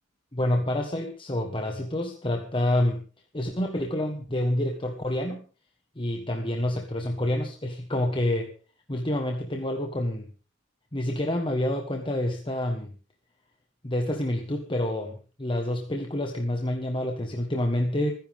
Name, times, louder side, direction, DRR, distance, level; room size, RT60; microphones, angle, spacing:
voice 1, 0.3-3.0 3.3-5.4 5.9-8.5 8.9-10.3 10.9-12.9 13.8-18.1, left 1 dB, 25° left, 3 dB, 1.5 m, -28 dB
26.5 x 10.5 x 3.7 m, 0.37 s
head